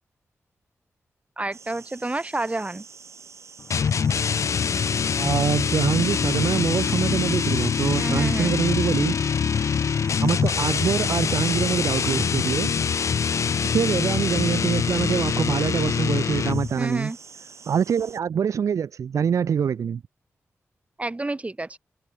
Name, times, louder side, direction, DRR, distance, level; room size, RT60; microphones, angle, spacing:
voice 1, 1.4-2.8 7.9-8.6 16.8-17.2 21.0-21.8, right 2 dB, 25° right, 5.2 m, -29 dB
sound 1, 1.5-18.2, right 5 dB, 65° right, 5.6 m, -46 dB
sound 2, 3.7-16.8, left 6 dB, 75° left, 0.7 m, -24 dB
voice 2, 5.2-9.1 10.2-12.7 13.7-17.1 17.7-20.0, right 7 dB, 90° right, 0.8 m, -24 dB
wide cardioid pair, 90°, 5 cm